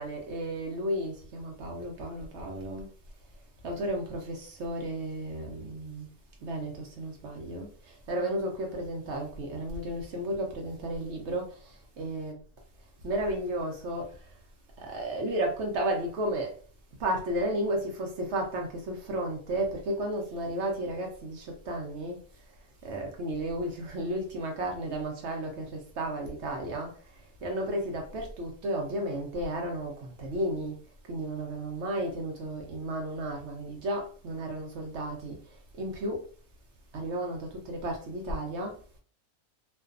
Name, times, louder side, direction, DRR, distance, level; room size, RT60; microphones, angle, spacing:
voice 1, 0.0-2.9 3.6-6.1 6.4-12.3 13.0-14.4 14.8-16.5 17.0-22.2 22.8-30.8 31.1-36.2 36.9-38.8, right 1 dB, 65° right, 0.7 m, -33 dB
2.5 x 2.3 x 2.4 m
omnidirectional pair, 1.5 m